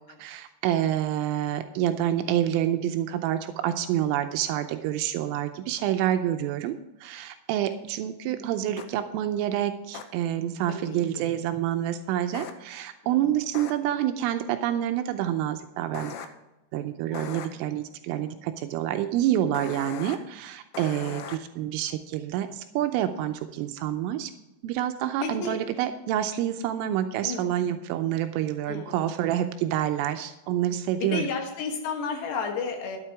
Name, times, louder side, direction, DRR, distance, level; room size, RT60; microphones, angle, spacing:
voice 1, 0.2-6.8 7.0-16.2 16.7-21.2 21.6-22.5 22.8-24.3 24.6-31.2, right 11 dB, 85° right, 8 dB, 3.2 m, -27 dB
sound 1, 8.8-8.9 9.9-10.0 12.3-12.5 13.5-13.7 15.9-16.3 17.1-17.5 19.5-20.2 20.7-21.4, left 8 dB, 90° left, 3.5 m, -38 dB
voice 2, 10.7-11.2 13.0-13.4 17.1-17.4 18.1-18.4 21.0-21.3 25.2-25.6 27.2-27.5 28.7-29.2 31.0-33.0, left 5 dB, 65° left, 2 dB, 3.3 m, -34 dB
12.0 x 8.3 x 4.7 m, 0.99 s
omnidirectional pair, 5.9 m